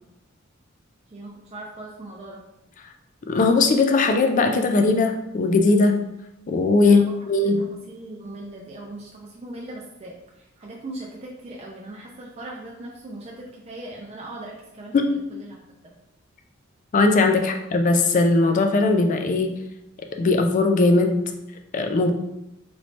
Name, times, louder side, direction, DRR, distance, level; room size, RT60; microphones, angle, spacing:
voice 1, 1.1-2.4 6.8-7.5 7.9-15.6 17.4-17.5, right 1 dB, 30° right, -2 dB, 0.4 m, -39 dB
voice 2, 3.3-6.0 6.5-7.6 14.9-15.1 16.9-19.5 20.1-21.2 21.7-22.1, left 3 dB, 40° left, 5 dB, 0.3 m, -19 dB
3.1 x 3.0 x 2.7 m, 0.88 s
head